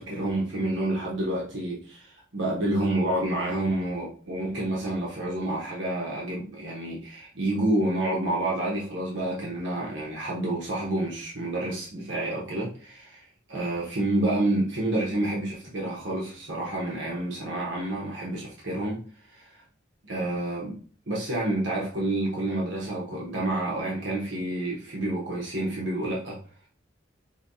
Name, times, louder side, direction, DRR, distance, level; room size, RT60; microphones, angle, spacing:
voice 1, 0.0-13.2 13.5-19.0 19.3-19.5 20.1-20.8 21.1-26.4, right 1 dB, 75° right, -4 dB, 1.1 m, -29 dB
5.2 x 2.8 x 2.7 m, 0.42 s
head